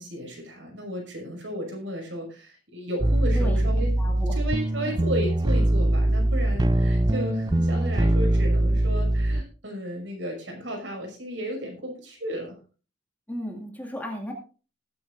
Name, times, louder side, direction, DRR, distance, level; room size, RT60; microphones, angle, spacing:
voice 1, 0.0-3.9 4.3-12.6, equal, 75° right, 1 dB, 5.6 m, -34 dB
sound 1, 3.0-9.4, right 1 dB, 20° right, 0.4 m, -22 dB
voice 2, 3.4-4.4 4.9-5.0 13.3-14.3, equal, 10° left, 1 dB, 2.1 m, -35 dB
20.0 x 9.3 x 2.5 m, 0.37 s
head